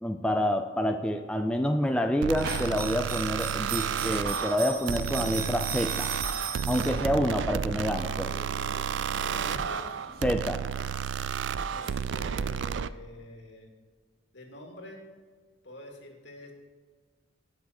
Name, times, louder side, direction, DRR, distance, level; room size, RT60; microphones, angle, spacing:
voice 1, 0.0-6.2 6.7-8.3 10.2-10.7, equal, 5° left, 5 dB, 0.4 m, -28 dB
sound 1, 2.2-12.9, right 7 dB, 65° right, 0.4 m, -32 dB
sound 2, 2.4-12.6, right 5 dB, 50° right, 1.7 m, -39 dB
voice 2, 9.2-9.9 11.7-13.7 14.3-15.0 15.6-16.5, left 1 dB, 60° left, 1 dB, 2.3 m, -45 dB
18.5 x 6.3 x 4.4 m, 1.5 s
head